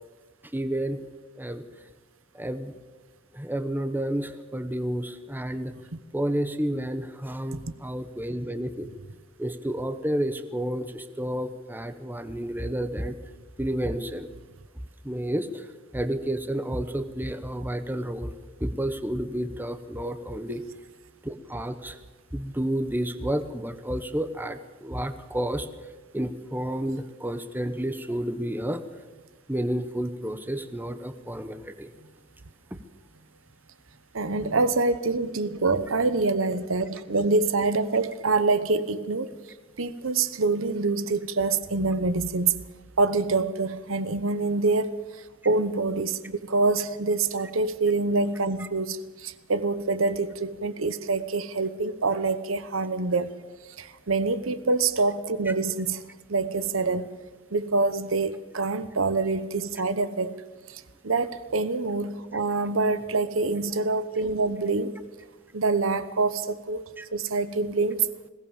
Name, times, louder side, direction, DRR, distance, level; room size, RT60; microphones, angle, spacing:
voice 1, 0.5-1.0 1.4-1.6 2.3-2.7 3.3-5.7 6.1-8.9 9.4-13.2 13.6-14.3 15.0-18.3 18.6-20.6 21.2-22.0 22.3-25.7 26.1-28.8 29.5-31.9 48.6-48.7 67.0-67.1, right 1 dB, 10° right, 1.0 m, -30 dB
voice 2, 34.1-39.3 39.8-42.6 43.0-44.9 45.4-53.3 53.8-56.0 56.3-57.1 57.5-60.4 60.7-64.9 65.5-66.8 67.1-68.1, right 3 dB, 75° right, 1.0 m, -26 dB
20.5 x 17.5 x 7.3 m
head